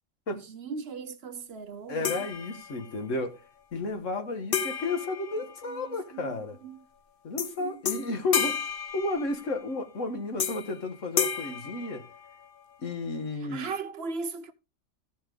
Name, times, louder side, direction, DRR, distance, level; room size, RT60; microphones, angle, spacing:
voice 1, 0.5-2.3 5.7-6.3 6.6-6.8 7.6-7.8 13.4-14.5, right 4 dB, 60° right, 0.9 m, -38 dB
voice 2, 1.9-3.4 3.7-6.6 7.2-8.6 8.9-12.1 12.8-13.7, left 3 dB, 75° left, 1.8 m, -32 dB
sound 1, 2.0-3.0 4.5-6.1 7.4-7.6 7.9-9.7 10.4-10.8 11.2-12.6, left 7 dB, 50° left, 0.9 m, -32 dB
14.5 x 6.0 x 3.8 m
omnidirectional pair, 1.3 m